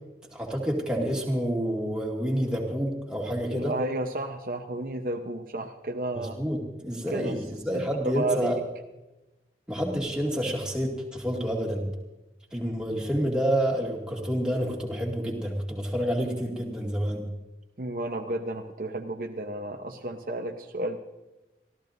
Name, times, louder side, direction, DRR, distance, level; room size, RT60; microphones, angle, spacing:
voice 1, 0.3-3.7 6.1-8.6 9.7-11.9 12.5-17.2, equal, 5° right, -2 dB, 2.3 m, -28 dB
voice 2, 3.5-6.4 7.1-7.4 7.7-8.5 17.8-21.0, right 1 dB, 50° right, 4 dB, 0.9 m, -32 dB
26.0 x 14.0 x 2.7 m, 1.0 s
head